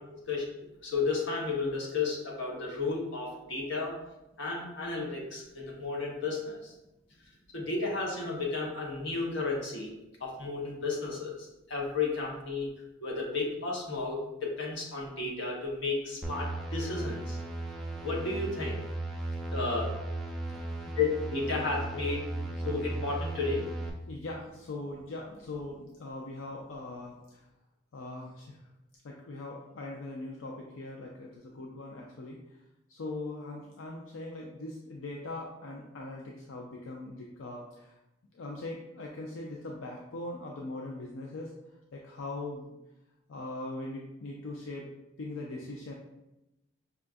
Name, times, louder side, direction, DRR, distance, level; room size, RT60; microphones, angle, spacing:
voice 1, 0.8-3.9 4.4-6.7 7.5-9.9 10.2-12.7 13.0-17.4 18.0-18.8 19.5-19.9 20.8-22.3 22.6-23.6, left 3 dB, 60° left, -3 dB, 1.1 m, -33 dB
sound 1, 16.2-23.9, right 2 dB, ahead, 0.4 m, -36 dB
voice 2, 24.1-27.4 27.9-28.6 29.0-32.4 32.9-37.9 38.3-41.5 41.9-42.8 43.3-44.9 45.2-45.9, left 2 dB, 80° left, -1 dB, 0.5 m, -41 dB
5.6 x 2.3 x 2.5 m, 0.95 s
head